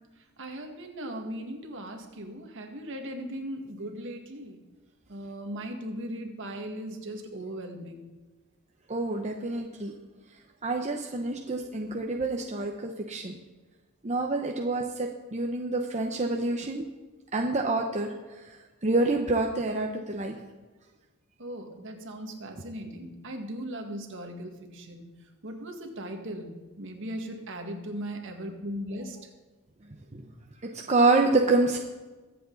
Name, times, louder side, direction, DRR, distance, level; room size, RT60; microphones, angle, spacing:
voice 1, 0.4-4.6 5.1-8.1 21.4-25.1 25.4-29.3, equal, 60° right, 3 dB, 1.9 m, -38 dB
voice 2, 8.9-9.9 10.6-13.3 14.0-16.8 17.3-18.1 18.8-20.4 30.1-30.3 30.6-31.8, right 3 dB, 30° right, 2 dB, 0.8 m, -27 dB
23.0 x 8.1 x 4.0 m, 1.2 s
head